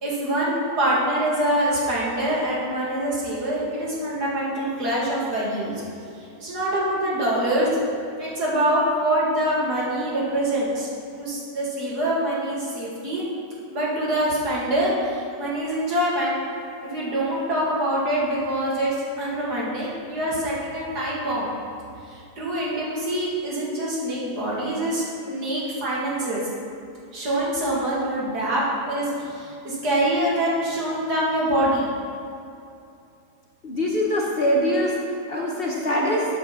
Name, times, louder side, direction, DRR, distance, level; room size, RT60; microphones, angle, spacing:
voice 1, 0.0-5.7 6.4-7.7 8.2-10.9 11.2-13.2 13.7-16.4 16.8-21.5 22.1-26.4 27.1-31.9, right 1 dB, 65° right, -6 dB, 2.7 m, -25 dB
voice 2, 33.6-34.9 35.3-36.2, equal, 40° left, -3 dB, 1.0 m, -23 dB
7.9 x 6.3 x 7.4 m, 2.5 s
omnidirectional pair, 1.8 m